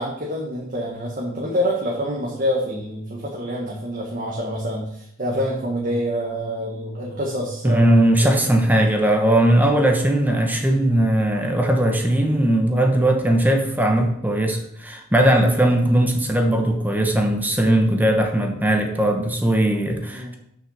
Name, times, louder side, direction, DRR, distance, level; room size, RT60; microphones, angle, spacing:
voice 1, 0.0-8.5 9.5-9.7 20.1-20.3, equal, 40° right, -3 dB, 1.5 m, -27 dB
voice 2, 7.6-20.3, right 1 dB, 10° right, 3 dB, 1.0 m, -19 dB
6.3 x 6.3 x 6.5 m, 0.75 s
head